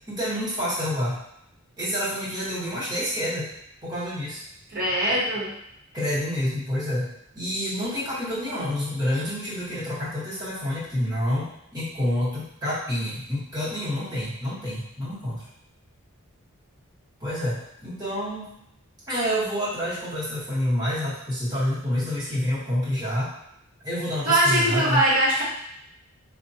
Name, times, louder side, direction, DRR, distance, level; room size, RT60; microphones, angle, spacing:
voice 1, 0.1-1.2 1.8-3.5 3.8-4.4 5.9-7.1 7.3-15.5 17.2-18.6 19.1-23.3 23.8-25.0, equal, 20° right, -10 dB, 1.1 m, -28 dB
voice 2, 4.7-5.5 24.2-25.4, right 1 dB, 40° right, -8 dB, 1.1 m, -21 dB
4.8 x 2.2 x 2.8 m, 0.76 s
head